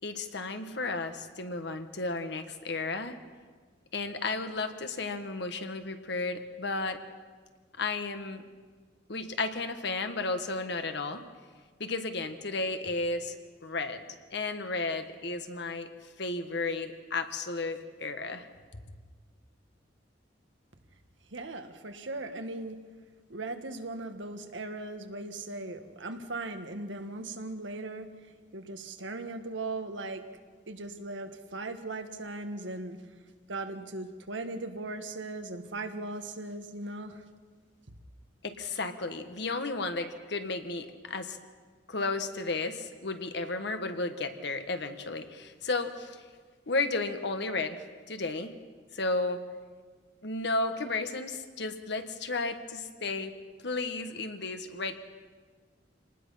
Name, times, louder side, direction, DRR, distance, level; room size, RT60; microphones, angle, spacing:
voice 1, 0.0-3.1 3.9-7.0 7.8-8.4 9.1-11.2 11.8-13.3 13.6-14.0 14.3-15.9 16.2-18.5 38.4-41.4 41.9-46.2 46.7-48.5 48.9-49.4 50.2-53.3 53.6-54.9, left 3 dB, 65° left, 8 dB, 1.5 m, -33 dB
voice 2, 21.3-22.8 23.3-28.1 28.5-30.2 30.7-33.0 33.5-37.2, right 2 dB, 85° right, 7 dB, 1.6 m, -38 dB
26.5 x 19.5 x 5.8 m, 1.5 s
head